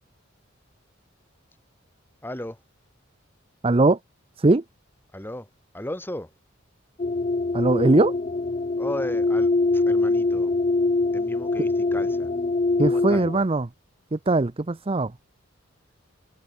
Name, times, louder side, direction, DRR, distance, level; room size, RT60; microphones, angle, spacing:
voice 1, 2.2-2.6 5.1-5.5 5.7-6.3 8.8-10.6 11.1-12.3 12.8-13.5, left 1 dB, 10° left, 2.8 m, -36 dB
voice 2, 3.6-4.0 4.4-4.6 7.5-8.1 12.8-13.7 14.1-15.1, right 2 dB, 30° right, 0.6 m, -20 dB
sound 1, 7.0-13.4, left 3 dB, 35° left, 0.5 m, -23 dB
head